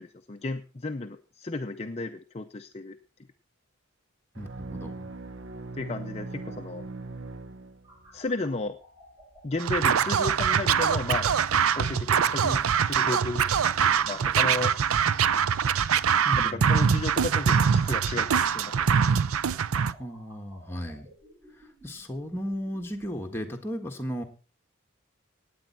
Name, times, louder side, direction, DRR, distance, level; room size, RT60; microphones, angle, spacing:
voice 1, 0.0-3.0 5.7-6.9 8.1-8.8 9.4-11.3 11.7-13.4 14.0-14.7 16.4-18.7, left 2 dB, 30° left, 7 dB, 0.6 m, -33 dB
voice 2, 4.3-5.1 12.4-12.6 16.2-16.7 20.0-21.1 21.5-24.2, equal, 10° left, 2 dB, 1.6 m, -35 dB
sound 1, 4.3-8.2, right 3 dB, 60° right, 0.7 m, -40 dB
sound 2, 7.8-22.8, equal, 15° right, 5.7 m, -55 dB
Scratching (performance technique), 9.6-19.9, right 7 dB, 90° right, 0.6 m, -23 dB
17.0 x 9.5 x 4.4 m, 0.35 s
head